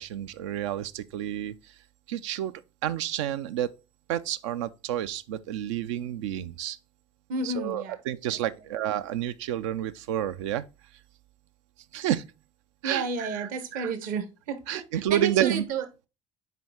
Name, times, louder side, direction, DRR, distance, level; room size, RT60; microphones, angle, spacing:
voice 1, 0.0-1.7 2.1-3.7 4.1-6.8 7.4-10.6 11.9-12.3 12.8-13.5 13.7-13.9 14.7-15.6, right 11 dB, 75° right, 0.4 m, -30 dB
voice 2, 7.3-7.9 8.3-8.4 12.8-16.1, right 4 dB, 60° right, 1.0 m, -32 dB
5.8 x 4.5 x 3.5 m
hypercardioid pair, 60°, 16 cm